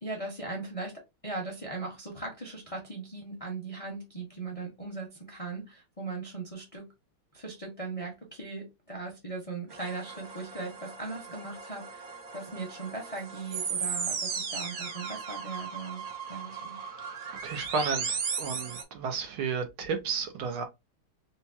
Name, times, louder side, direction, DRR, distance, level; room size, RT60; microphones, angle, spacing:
voice 1, 0.0-6.9 7.3-16.0 16.3-16.8, right 3 dB, 25° left, 0.8 m, -39 dB
sound 1, 9.7-18.8, right 6 dB, 60° right, 1.1 m, -36 dB
voice 2, 17.4-20.6, right 5 dB, 75° right, 1.7 m, -32 dB
4.2 x 2.3 x 2.7 m
omnidirectional pair, 2.3 m